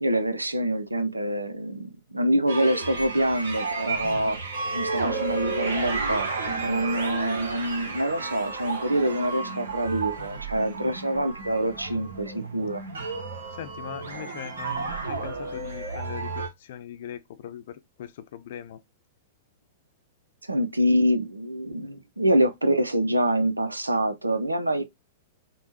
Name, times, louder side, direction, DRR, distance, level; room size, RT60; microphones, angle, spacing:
voice 1, 0.0-4.4 4.7-12.8 20.5-24.8, right 1 dB, 85° right, 0.4 m, -25 dB
sound 1, 2.5-16.5, right 3 dB, 65° right, 0.8 m, -32 dB
voice 2, 13.5-18.8, left 10 dB, 55° left, 0.4 m, -40 dB
5.2 x 2.0 x 2.7 m
figure-of-eight pair, 100°, 0 cm